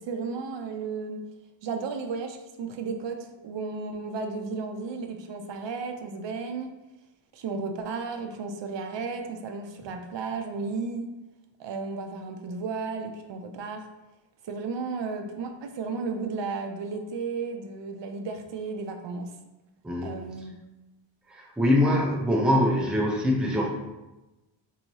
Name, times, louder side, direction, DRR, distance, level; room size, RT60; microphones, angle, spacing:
voice 1, 0.1-1.2 1.6-6.7 7.3-11.1 11.6-13.9 14.4-19.4 20.0-20.5, right 4 dB, 75° right, 5 dB, 0.5 m, -34 dB
voice 2, 21.3-23.7, left 1 dB, ahead, -1 dB, 0.4 m, -23 dB
4.1 x 2.7 x 3.0 m, 1.0 s
wide cardioid pair, 150°, 44 cm